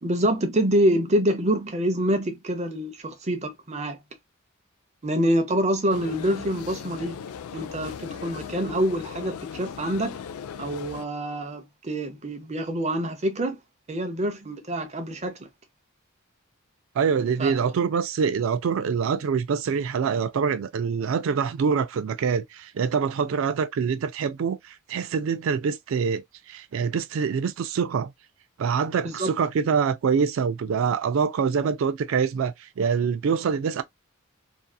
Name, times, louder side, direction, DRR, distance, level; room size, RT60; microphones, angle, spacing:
voice 1, 0.0-4.0 5.0-7.2 7.5-10.2 10.6-13.6 13.9-15.4 17.4-17.5 29.0-29.3, right 1 dB, 30° right, 0.6 m, -26 dB
Station in southern France, 5.9-11.0, left 7 dB, 85° left, 0.3 m, -38 dB
voice 2, 17.0-28.1 28.6-33.8, right 6 dB, 65° right, 0.3 m, -25 dB
2.7 x 2.4 x 2.2 m
head